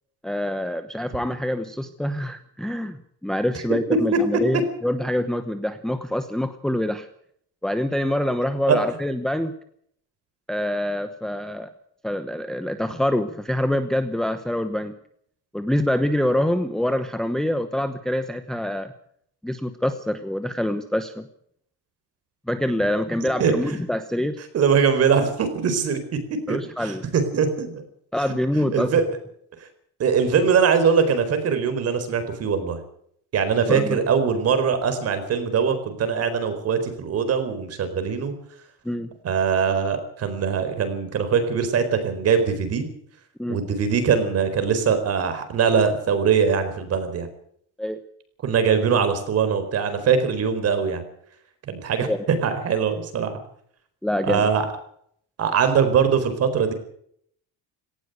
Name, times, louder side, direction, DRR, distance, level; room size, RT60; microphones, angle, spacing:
voice 1, 0.2-7.1 7.6-9.5 10.5-11.7 12.0-15.0 15.5-18.9 19.4-21.2 22.5-24.4 26.5-27.1 28.1-28.9 33.7-34.0 38.8-39.1 43.4-43.6 47.8-48.0 52.0-52.3 54.0-54.5, left 1 dB, ahead, 8 dB, 0.9 m, -25 dB
voice 2, 23.2-23.8 24.5-26.0 26.5-27.8 28.7-29.0 30.0-32.8 33.3-38.3 39.2-42.9 43.5-47.3 48.4-51.0 51.7-52.1 52.4-53.4 54.2-54.7 55.4-56.7, right 6 dB, 40° right, 10 dB, 4.4 m, -22 dB
18.0 x 17.5 x 8.0 m, 0.67 s
cardioid pair, 180°, 39 cm